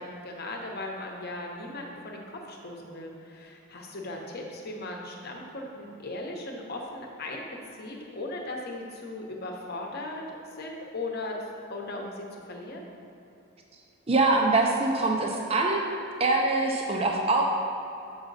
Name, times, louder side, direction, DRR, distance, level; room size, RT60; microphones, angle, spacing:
voice 1, 0.0-7.5 7.7-10.2 10.5-11.4 11.7-12.8, left 2 dB, 45° left, 0 dB, 0.9 m, -38 dB
voice 2, 14.1-15.8 16.2-17.4, right 3 dB, 25° right, 0 dB, 0.5 m, -23 dB
7.8 x 5.6 x 4.0 m, 2.8 s
head